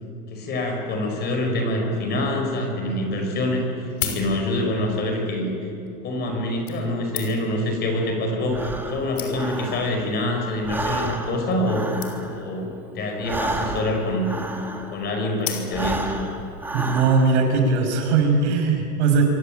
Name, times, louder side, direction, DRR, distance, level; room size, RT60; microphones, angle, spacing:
voice 1, 0.3-5.7 6.0-11.8 12.3-14.3 14.9-16.1, left 1 dB, 20° left, 3 dB, 5.2 m, -25 dB
sound 1, 2.9-3.0 3.7-4.8 5.7-5.9 6.7-7.6 8.5-8.6 8.8-8.9 9.1-9.7 10.4-10.6 10.9-11.0 11.2-11.3 11.5-11.6 12.0-12.5 13.5-14.0 15.4-16.1 16.6-16.7, left 9 dB, 70° left, 6.2 m, -34 dB
Breathing, 8.5-10.2 10.5-15.1 15.6-17.5, right 2 dB, 5° right, 1.8 m, -31 dB
voice 2, 16.7-19.2, right 4 dB, 50° right, 4 dB, 6.2 m, -19 dB
25.5 x 25.5 x 9.1 m, 2.7 s
supercardioid pair, 165°, 45 cm